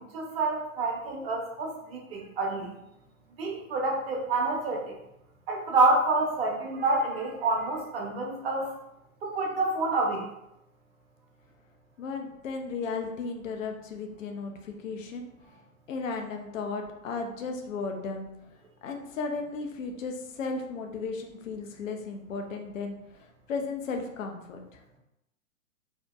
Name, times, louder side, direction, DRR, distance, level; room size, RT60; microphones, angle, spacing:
voice 1, 0.1-2.7 3.4-5.0 5.5-8.7 9.2-10.2, right 3 dB, 45° right, 0 dB, 0.7 m, -28 dB
voice 2, 12.0-15.3 15.9-18.3 18.8-24.8, left 4 dB, 65° left, 4 dB, 0.5 m, -35 dB
2.6 x 2.1 x 2.2 m, 0.86 s
figure-of-eight pair, 110°, 42 cm